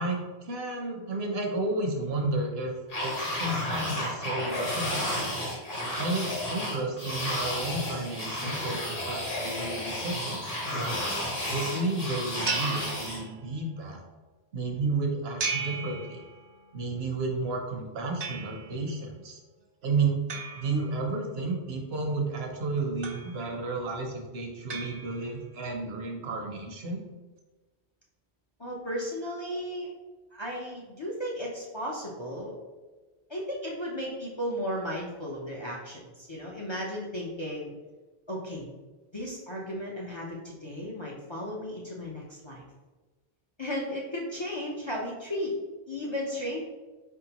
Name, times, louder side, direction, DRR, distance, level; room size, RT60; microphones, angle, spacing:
voice 1, 0.0-2.7 3.0-5.4 6.0-11.0 11.5-14.0 14.5-16.2 16.7-19.4 19.8-20.2 20.6-27.0, right 3 dB, 70° right, 2 dB, 1.0 m, -32 dB
sound 1, 2.9-13.2, left 1 dB, 60° left, 1.7 m, -32 dB
sound 2, 12.5-13.7 15.4-16.7 18.2-18.9 20.3-21.4 23.0-23.7 24.7-25.6, right 5 dB, 50° right, 0.5 m, -37 dB
voice 2, 28.6-29.9 30.3-32.6 33.3-37.7 38.3-38.7 39.1-42.6 43.6-45.5 45.9-46.6, equal, 35° left, -3 dB, 0.5 m, -35 dB
4.3 x 3.6 x 2.9 m, 1.2 s
omnidirectional pair, 1.1 m